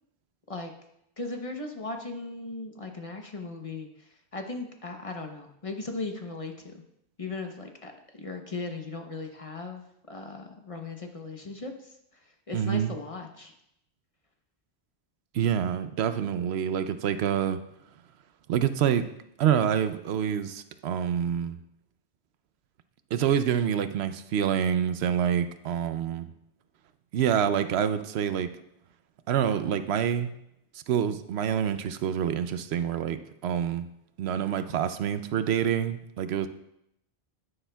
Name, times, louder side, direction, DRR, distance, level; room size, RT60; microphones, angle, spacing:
voice 1, 1.2-6.7 7.2-7.9 8.2-11.9 12.5-13.5, left 3 dB, 35° left, 4 dB, 0.8 m, -37 dB
voice 2, 12.5-12.9 15.3-17.6 18.5-19.1 19.4-21.6 23.1-26.3 27.1-28.5 29.3-30.3 30.7-33.9 34.2-36.5, right 9 dB, 80° right, 11 dB, 0.8 m, -27 dB
9.9 x 9.9 x 2.3 m, 0.78 s
omnidirectional pair, 1.1 m